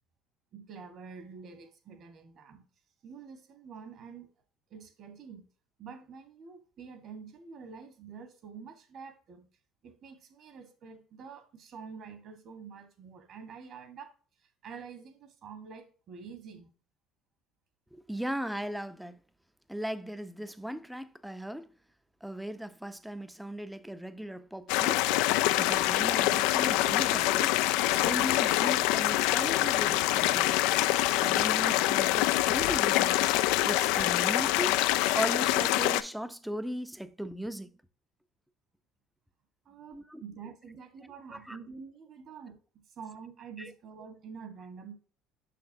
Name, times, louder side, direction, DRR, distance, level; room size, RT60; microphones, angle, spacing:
voice 1, 0.5-2.6 3.0-4.3 4.7-5.5 5.8-9.5 9.8-14.1 14.6-16.7 39.6-42.6 43.0-44.9, right 6 dB, 55° right, 1.4 m, -47 dB
voice 2, 17.9-19.2 19.7-21.7 22.2-25.0 25.6-27.6 28.0-30.6 31.1-33.3 33.7-34.8 35.1-37.7 39.9-40.2 41.3-41.6 43.6-43.7, equal, 5° right, 0.5 m, -37 dB
sound 1, 24.7-36.0, left 15 dB, 80° left, 0.3 m, -25 dB
6.1 x 5.8 x 2.7 m
supercardioid pair, 100°, 0 cm